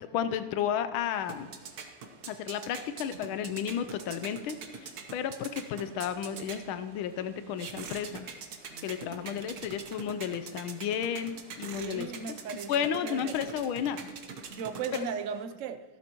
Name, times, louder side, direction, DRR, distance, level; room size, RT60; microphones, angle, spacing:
voice 1, 0.1-1.5 2.3-8.3 8.8-12.1 12.7-14.1, left 8 dB, 85° left, 11 dB, 1.5 m, -32 dB
sound 1, 1.0-15.4, right 5 dB, 55° right, 1.4 m, -45 dB
voice 2, 8.7-9.5 11.8-13.4 14.5-15.8, right 7 dB, 85° right, 10 dB, 0.6 m, -38 dB
15.5 x 13.0 x 3.0 m, 1.2 s
omnidirectional pair, 2.2 m